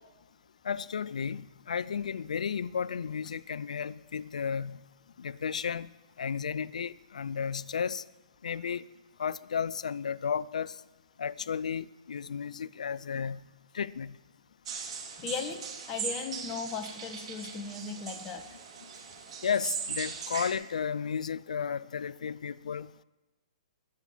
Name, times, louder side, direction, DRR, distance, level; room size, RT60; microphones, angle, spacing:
voice 1, 0.6-4.8 5.2-5.9 6.2-8.0 8.4-8.8 9.2-10.7 11.2-13.5 13.7-14.2 19.4-22.9, left 7 dB, 80° left, 0.5 m, -33 dB
sound 1, 14.7-20.5, right 6 dB, 60° right, 3.2 m, -39 dB
voice 2, 15.2-18.4, left 5 dB, 25° left, 1.5 m, -37 dB
21.0 x 7.7 x 7.2 m
hypercardioid pair, 135°, 4 cm